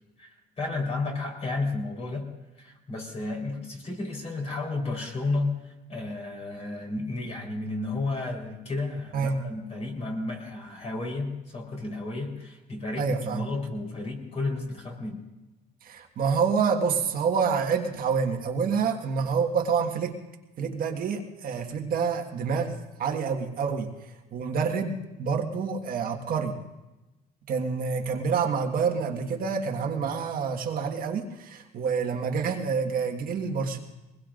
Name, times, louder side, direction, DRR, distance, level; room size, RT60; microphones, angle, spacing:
voice 1, 0.2-2.3 2.6-15.2, left 2 dB, 40° left, 1 dB, 4.0 m, -32 dB
voice 2, 13.0-13.5 15.8-20.2 20.6-23.9 24.3-26.6 27.5-33.8, right 5 dB, 60° right, 2 dB, 1.6 m, -27 dB
23.0 x 20.5 x 2.6 m, 1.0 s
cardioid pair, 110°, 17 cm